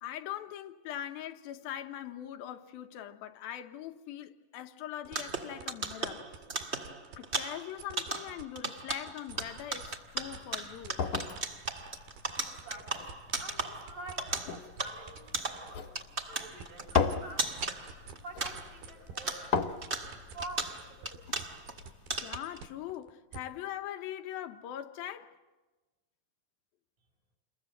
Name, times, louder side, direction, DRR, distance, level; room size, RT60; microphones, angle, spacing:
voice 1, 0.0-6.3 7.2-11.0 13.7-13.8 22.2-25.3, left 11 dB, 90° left, 2.9 m, -41 dB
sound 1, 5.1-18.9 19.2-21.8 22.1-22.6, right 2 dB, 35° right, 1.0 m, -37 dB
sound 2, 5.1-9.9 10.3-15.8 16.2-23.4, right 6 dB, 80° right, 3.5 m, -48 dB
sound 3, 9.3-22.2, left 6 dB, 65° left, 2.0 m, -38 dB
voice 2, 12.4-17.6 18.1-21.5, right 1 dB, 60° right, 7.1 m, -48 dB
28.5 x 22.0 x 8.0 m
omnidirectional pair, 4.1 m